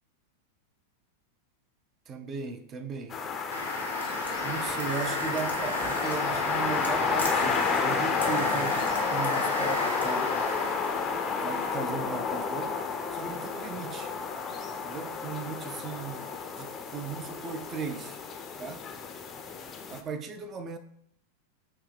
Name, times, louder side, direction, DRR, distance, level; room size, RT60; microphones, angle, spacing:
voice 1, 2.1-3.3 4.3-10.4 11.4-12.8 13.1-14.1 14.5-18.2 18.6-18.8 19.9-20.8, right 5 dB, 25° right, 0.5 m, -37 dB
sound 1, 3.1-20.0, left 5 dB, 25° left, 0.5 m, -31 dB
sound 2, 3.5-11.7, equal, 80° right, 0.8 m, -35 dB
5.8 x 2.8 x 3.3 m
figure-of-eight pair, 90°, 0 cm